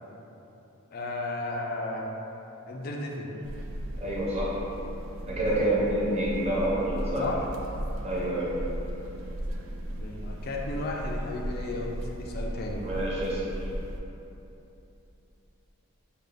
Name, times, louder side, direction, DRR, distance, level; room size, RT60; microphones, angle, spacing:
voice 1, 0.9-2.0 2.7-3.3 7.2-7.5 10.0-12.8, left 2 dB, 45° left, -1 dB, 0.4 m, -34 dB
sound 1, 3.4-14.0, right 1 dB, 70° right, 0.4 m, -36 dB
voice 2, 4.0-4.6 5.3-7.2 8.0-8.5 12.8-13.4, right 1 dB, 30° right, -7 dB, 0.8 m, -27 dB
5.3 x 2.2 x 3.3 m, 3.0 s
head